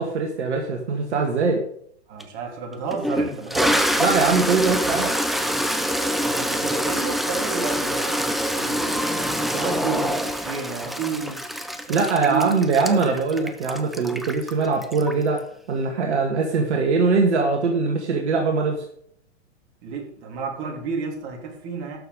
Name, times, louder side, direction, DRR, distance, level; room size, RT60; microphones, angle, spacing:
voice 1, 0.0-1.6 4.0-5.1 11.9-15.4 15.7-18.8, right 4 dB, 70° right, 2 dB, 2.1 m, -22 dB
voice 2, 2.1-3.9 6.2-11.4 11.9-13.3 19.8-22.0, right 5 dB, 40° right, 1 dB, 3.5 m, -31 dB
Toilet flush, 2.2-2.3 2.9-15.4, equal, ahead, 0.3 m, -25 dB
12.0 x 6.7 x 5.2 m, 0.65 s
hypercardioid pair, 120°, 35 cm